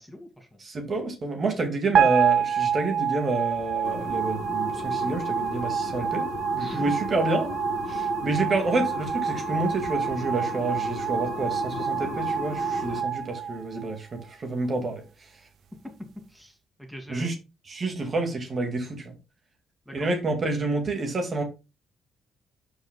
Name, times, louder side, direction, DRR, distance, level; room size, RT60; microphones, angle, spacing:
voice 1, 0.0-0.5 6.7-7.0 15.8-15.9 16.3-17.3 19.9-20.1, left 1 dB, ahead, 2.5 m, -41 dB
voice 2, 0.6-6.3 6.5-7.5 7.9-15.0 17.1-17.3 17.7-19.1 19.9-21.4, right 2 dB, 45° right, 2.0 m, -28 dB
sound 1, 1.9-14.2, right 8 dB, 70° right, 0.7 m, -28 dB
sound 2, 3.8-13.0, left 5 dB, 85° left, 1.6 m, -36 dB
12.5 x 5.4 x 2.3 m
cardioid pair, 90°, 0 cm